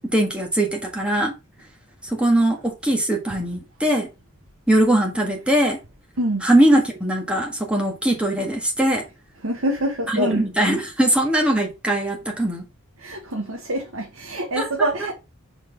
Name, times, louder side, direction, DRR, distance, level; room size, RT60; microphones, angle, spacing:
voice 1, 0.0-1.3 2.0-4.1 4.7-5.8 6.4-9.0 10.1-12.6 14.6-15.1, right 1 dB, 5° right, 1.5 m, -21 dB
voice 2, 6.2-6.5 9.4-10.5 13.0-15.1, right 1 dB, 70° right, 1.1 m, -25 dB
5.1 x 4.1 x 5.1 m
head